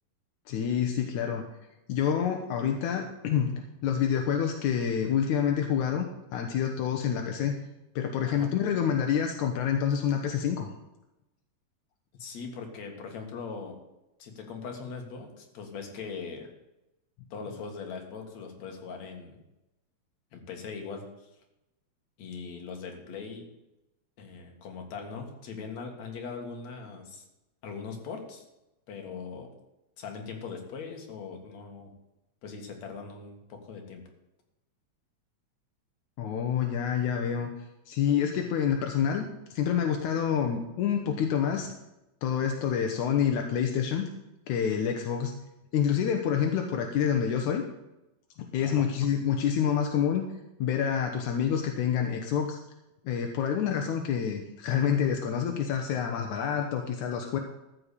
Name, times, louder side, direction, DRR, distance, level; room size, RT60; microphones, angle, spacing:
voice 1, 0.5-1.4 1.9-3.5 3.8-6.1 6.3-7.6 8.0-10.7 36.2-37.5 37.9-39.2 39.5-41.7 42.2-44.1 44.5-45.4 45.7-47.6 48.4-50.3 50.6-52.6 53.1-57.4, left 8 dB, 85° left, 4 dB, 2.4 m, -27 dB
voice 2, 12.1-13.8 14.2-16.5 17.3-19.4 20.3-21.3 22.2-23.5 24.2-27.2 27.6-28.5 28.9-29.5 30.0-31.9 32.4-34.0 48.6-48.9, left 5 dB, 70° left, 3 dB, 3.1 m, -40 dB
14.0 x 5.8 x 8.3 m, 0.94 s
omnidirectional pair, 3.3 m